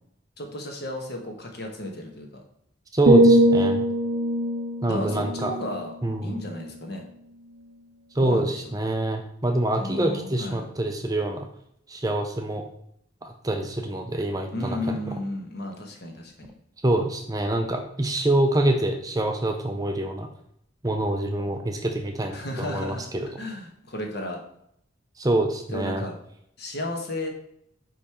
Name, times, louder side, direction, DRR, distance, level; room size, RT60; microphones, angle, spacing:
voice 1, 0.4-2.4 4.9-5.9 6.2-7.0 8.2-8.8 9.8-10.6 14.5-16.5 22.3-24.4 25.7-26.1 26.6-27.3, left 1 dB, 50° left, 2 dB, 1.3 m, -33 dB
voice 2, 2.9-3.8 4.8-5.5 6.0-6.4 8.1-11.5 11.9-12.6 13.2-15.1 16.8-20.3 20.8-23.3 25.2-26.0, right 1 dB, 15° right, 4 dB, 0.5 m, -26 dB
sound 1, 3.1-7.0 7.4-7.7, right 1 dB, 70° right, 0.6 m, -22 dB
5.4 x 4.9 x 4.3 m, 0.72 s
head